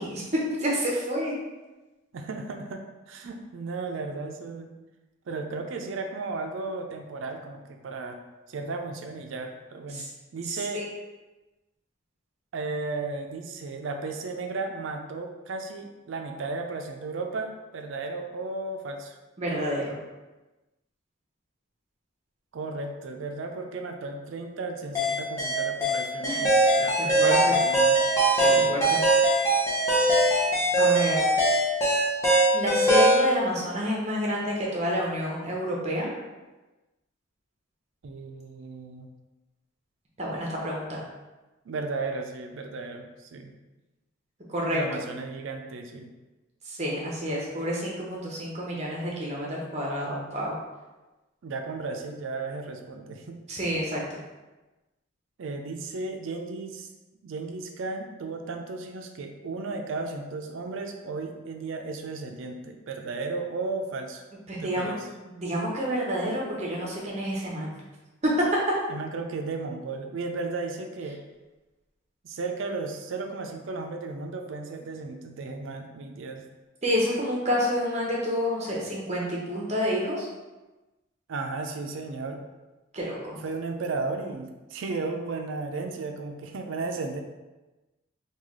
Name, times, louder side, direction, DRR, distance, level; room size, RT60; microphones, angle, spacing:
voice 1, 0.0-1.3 9.9-10.1 10.5-10.8 19.4-20.0 26.2-26.4 27.0-27.6 28.3-29.0 30.8-31.2 32.5-36.1 40.2-41.0 44.5-44.8 46.7-50.5 53.5-54.0 64.5-64.9 65.2-67.7 68.2-68.3 76.8-80.3 82.9-83.4, equal, 35° right, -3 dB, 0.7 m, -29 dB
voice 2, 2.1-4.7 5.3-8.2 8.5-10.1 10.3-10.8 12.5-19.2 22.5-28.0 28.4-28.8 38.0-39.1 41.7-43.5 44.7-46.1 51.4-53.4 55.4-56.9 57.2-64.2 64.6-65.1 68.9-71.2 72.2-76.4 81.3-82.4 83.4-87.2, right 3 dB, 75° right, 4 dB, 0.4 m, -34 dB
sound 1, 25.0-33.2, right 1 dB, 15° left, 0.7 m, -21 dB
3.2 x 2.3 x 3.6 m, 1.1 s
head